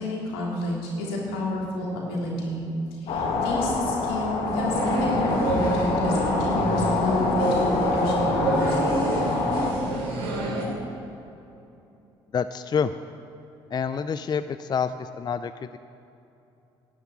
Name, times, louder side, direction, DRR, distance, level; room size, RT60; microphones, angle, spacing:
voice 1, 0.0-2.6 3.0-8.8, left 1 dB, 85° left, -3 dB, 3.0 m, -29 dB
sound 1, 3.1-9.7, left 3 dB, 65° left, 1.9 m, -26 dB
sound 2, 4.5-10.7, right 2 dB, 80° right, 3.3 m, -27 dB
voice 2, 12.3-12.9 13.7-15.8, left 6 dB, 35° left, 12 dB, 0.5 m, -27 dB
11.5 x 7.3 x 8.7 m, 2.8 s
hypercardioid pair, 60°, 12 cm